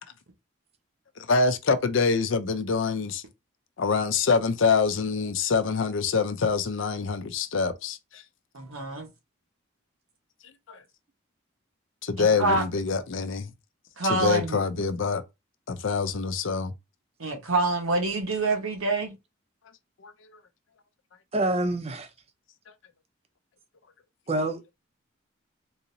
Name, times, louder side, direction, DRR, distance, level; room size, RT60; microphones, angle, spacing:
voice 1, 1.3-3.2 3.8-8.2 10.7-10.8 12.0-13.5 14.1-15.2 15.7-16.7 20.0-20.1, left 5 dB, 65° left, 0.5 m, -25 dB
voice 2, 8.5-9.1 12.2-12.6 14.0-14.6 17.2-19.1, right 2 dB, 90° right, 1.1 m, -26 dB
voice 3, 21.3-22.1 24.3-24.7, right 1 dB, 30° right, 0.5 m, -27 dB
3.8 x 2.9 x 2.6 m
head